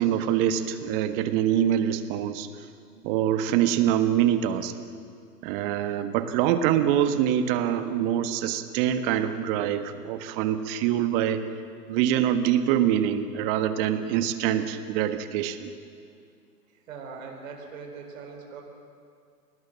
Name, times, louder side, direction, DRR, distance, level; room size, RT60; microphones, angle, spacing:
voice 1, 0.0-2.5 3.0-4.7 5.4-11.4 11.9-15.7, right 10 dB, 35° right, 9 dB, 1.5 m, -25 dB
voice 2, 16.7-18.6, right 5 dB, 55° right, 2 dB, 4.5 m, -41 dB
28.0 x 20.0 x 7.4 m, 2.3 s
hypercardioid pair, 130°, 48 cm